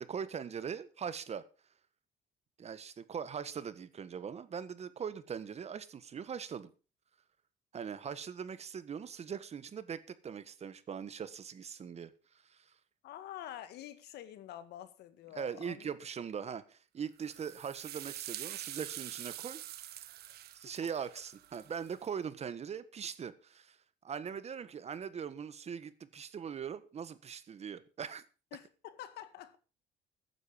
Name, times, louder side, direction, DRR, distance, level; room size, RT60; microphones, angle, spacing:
voice 1, 0.0-1.4 2.6-6.7 7.7-12.1 12.5-12.6 15.3-19.6 20.5-23.8 24.0-28.2, right 7 dB, 40° right, 1.4 m, -41 dB
voice 2, 13.0-15.9 28.5-29.6, left 12 dB, 80° left, 1.9 m, -47 dB
sound 1, 17.2-22.1, right 13 dB, 70° right, 1.2 m, -45 dB
14.5 x 10.0 x 5.1 m
cardioid pair, 110°, 17 cm